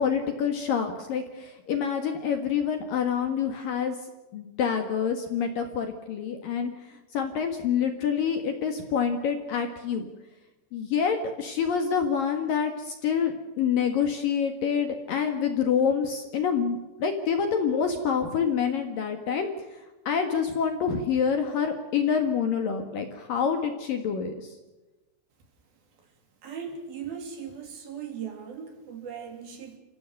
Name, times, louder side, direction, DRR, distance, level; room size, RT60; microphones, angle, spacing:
voice 1, 0.0-4.0 4.3-10.1 10.7-19.5 19.7-24.6, left 7 dB, 60° left, 5 dB, 2.8 m, -27 dB
voice 2, 26.4-29.8, right 7 dB, 55° right, 5 dB, 4.5 m, -38 dB
29.5 x 16.0 x 6.6 m, 1.1 s
omnidirectional pair, 5.6 m